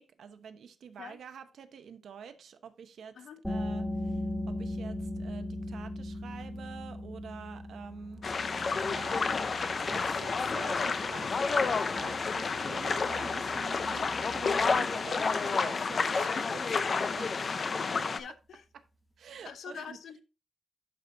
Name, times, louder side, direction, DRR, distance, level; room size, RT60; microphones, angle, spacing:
voice 1, 0.0-17.3 19.2-20.0, right 7 dB, 65° right, 0.8 m, -47 dB
sound 1, 3.4-14.8, left 1 dB, 5° left, 1.1 m, -39 dB
sound 2, 7.8-14.8, right 6 dB, 80° right, 1.9 m, -55 dB
sound 3, 8.2-18.2, left 4 dB, 35° left, 0.5 m, -30 dB
voice 2, 17.7-18.6 19.4-20.2, left 7 dB, 65° left, 0.8 m, -45 dB
11.0 x 4.9 x 2.7 m
wide cardioid pair, 175°, 0 cm